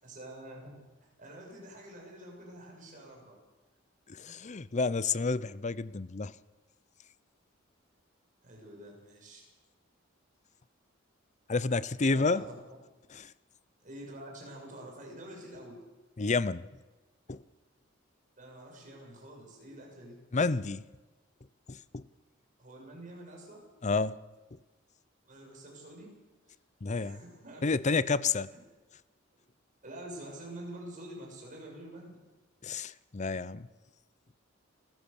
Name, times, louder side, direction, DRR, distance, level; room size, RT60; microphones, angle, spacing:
voice 1, 0.0-3.4 8.4-9.5 12.0-12.6 13.8-15.8 18.4-20.2 22.6-23.6 25.3-26.1 26.9-27.7 28.5-28.6 29.8-32.2, right 1 dB, 40° right, 0 dB, 7.3 m, -47 dB
voice 2, 4.1-6.3 11.5-12.4 13.2-13.3 16.2-16.7 17.3-17.4 20.3-20.8 21.7-22.0 23.8-24.2 26.8-27.2 27.6-28.5 32.6-33.7, left 4 dB, 35° left, 18 dB, 0.6 m, -30 dB
29.0 x 15.5 x 7.1 m, 1.2 s
head